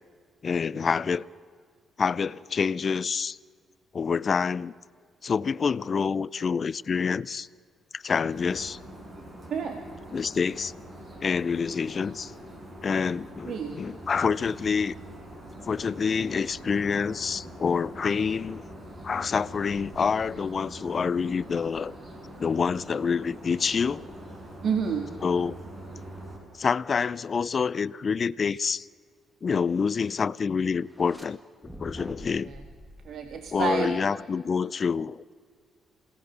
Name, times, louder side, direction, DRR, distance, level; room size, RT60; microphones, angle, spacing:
voice 1, 0.4-1.2 2.0-3.4 3.9-4.7 5.2-7.5 7.9-8.8 10.1-10.7 11.2-12.3 12.8-15.0 15.7-18.6 19.0-21.9 22.4-24.1 25.2-25.5 26.6-28.9 29.4-31.4 31.8-32.5 33.5-35.3, left 5 dB, 40° left, 0.5 m, -27 dB
sound 1, 8.3-26.4, right 1 dB, 35° right, 6.1 m, -44 dB
voice 2, 9.5-9.8 13.5-13.8 24.6-25.1 32.5-32.6 33.1-34.0, right 6 dB, 65° right, 1.9 m, -29 dB
sound 2, 30.8-31.3 31.6-34.2, equal, 5° right, 2.0 m, -45 dB
28.0 x 18.0 x 6.9 m
cardioid pair, 90°, 0 cm